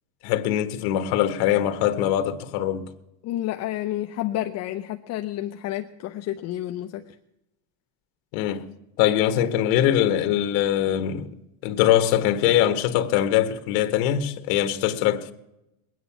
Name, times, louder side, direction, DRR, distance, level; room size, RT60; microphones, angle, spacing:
voice 1, 0.2-2.9 8.3-8.6 9.0-11.4 11.6-15.3, left 11 dB, 75° left, 1.4 m, -22 dB
voice 2, 3.2-7.2, left 13 dB, 45° left, 0.7 m, -30 dB
21.5 x 9.3 x 7.2 m
cardioid pair, 165°, 37 cm